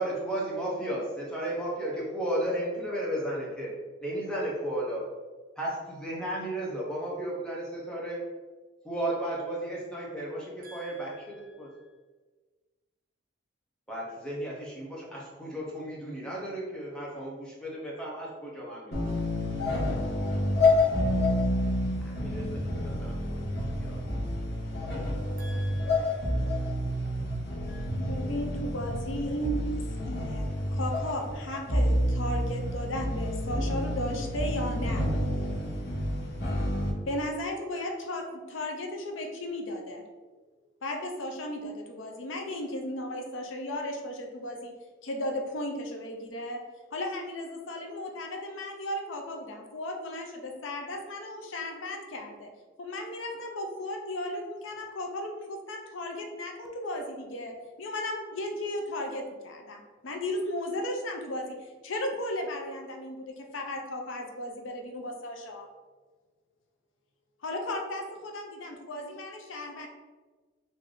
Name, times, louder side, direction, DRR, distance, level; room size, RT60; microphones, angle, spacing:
voice 1, 0.0-3.7 4.0-5.0 5.6-8.2 8.8-11.7 13.9-19.1 22.0-24.0, right 1 dB, 5° left, -5 dB, 0.7 m, -34 dB
sound 1, 18.9-36.9, left 1 dB, 55° left, 1.0 m, -29 dB
voice 2, 25.2-26.2 26.6-27.1, equal, 40° right, 0 dB, 0.5 m, -50 dB
voice 3, 27.7-29.6 30.1-35.1 37.1-40.0 40.8-44.7 45.0-46.6 46.9-52.5 52.8-65.7 67.4-69.9, left 1 dB, 75° left, 2 dB, 0.6 m, -35 dB
3.3 x 2.6 x 3.7 m, 1.3 s
head